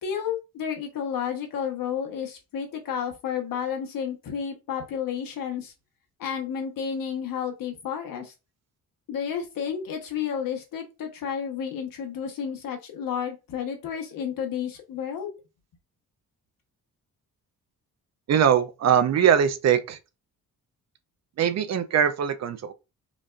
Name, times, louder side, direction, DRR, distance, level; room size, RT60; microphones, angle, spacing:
voice 1, 0.0-5.7 6.2-8.3 9.1-15.3, left 7 dB, 75° left, 1.1 m, -31 dB
voice 2, 18.3-20.0 21.4-22.7, right 8 dB, 50° right, 0.4 m, -21 dB
5.1 x 2.4 x 2.4 m
wide cardioid pair, 160°, 34 cm